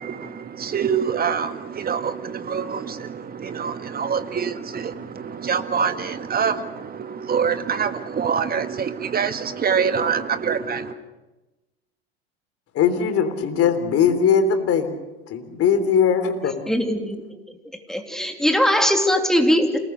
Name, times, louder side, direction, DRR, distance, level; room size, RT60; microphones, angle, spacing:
voice 1, 0.0-11.0, right 6 dB, 30° right, 10 dB, 1.8 m, -25 dB
voice 2, 12.7-14.9 15.3-16.6, left 7 dB, 45° left, 9 dB, 3.4 m, -20 dB
voice 3, 16.7-17.6 17.9-19.8, equal, ahead, 4 dB, 2.9 m, -21 dB
28.0 x 19.0 x 6.7 m, 1.1 s
hypercardioid pair, 75°, 31 cm